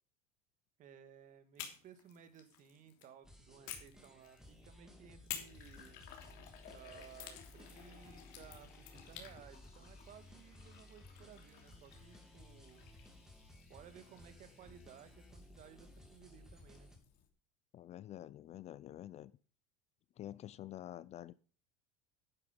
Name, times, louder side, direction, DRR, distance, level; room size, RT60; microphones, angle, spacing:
voice 1, 0.8-6.0 6.7-12.8 13.7-16.9, right 8 dB, 45° right, 2.0 m, -58 dB
sound 1, 1.6-3.1 3.7-4.7 5.3-9.3, left 10 dB, 70° left, 3.2 m, -50 dB
sound 2, 3.2-17.0, left 1 dB, 5° right, 3.2 m, -58 dB
Fill (with liquid), 4.9-17.3, left 9 dB, 50° left, 3.1 m, -61 dB
voice 2, 17.7-19.3 20.2-21.3, left 12 dB, 35° left, 0.5 m, -48 dB
11.0 x 9.9 x 5.3 m
supercardioid pair, 120°, 19 cm